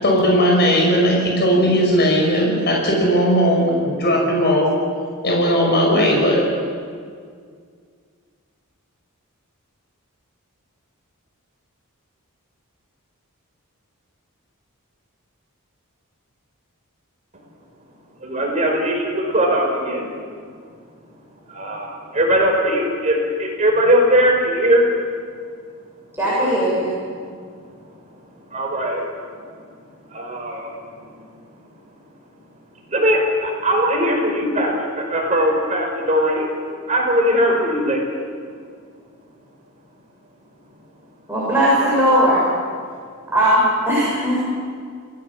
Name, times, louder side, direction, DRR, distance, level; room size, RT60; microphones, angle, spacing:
voice 1, 0.0-4.7 5.2-6.4, equal, 50° left, -2 dB, 6.0 m, -17 dB
voice 2, 18.2-20.1 21.5-24.9 27.0-27.1 28.5-29.1 30.1-30.7 32.9-36.5 36.9-38.2, equal, 35° right, 0 dB, 5.4 m, -19 dB
voice 3, 26.2-26.9 41.3-42.4 43.3-44.4, equal, 10° right, -8 dB, 7.4 m, -18 dB
28.0 x 17.5 x 7.5 m, 2.1 s
head